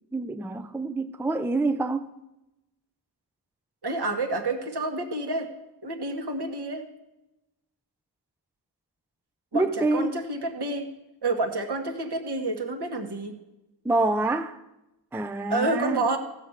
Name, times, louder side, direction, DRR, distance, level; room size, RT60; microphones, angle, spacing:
voice 1, 0.1-2.1 9.5-10.2 13.8-14.6 15.1-16.0, right 2 dB, 5° right, 0.4 m, -26 dB
voice 2, 3.8-5.5 5.8-6.8 9.5-10.9 11.2-13.3 15.5-16.2, right 2 dB, 60° right, 1.6 m, -29 dB
15.5 x 5.7 x 8.0 m
wide cardioid pair, 90°, 45 cm